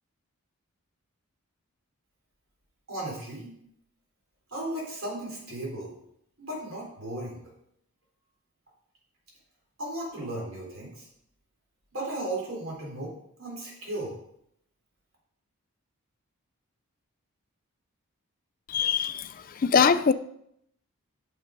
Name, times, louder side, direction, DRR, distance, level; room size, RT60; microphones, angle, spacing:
voice 1, 2.9-3.5 4.5-5.9 6.4-7.4 9.8-11.1 11.9-14.1, right 1 dB, 65° right, 3.9 m, -35 dB
voice 2, 18.7-19.3 19.6-20.1, left 6 dB, 40° left, 0.4 m, -22 dB
8.7 x 6.6 x 5.2 m
head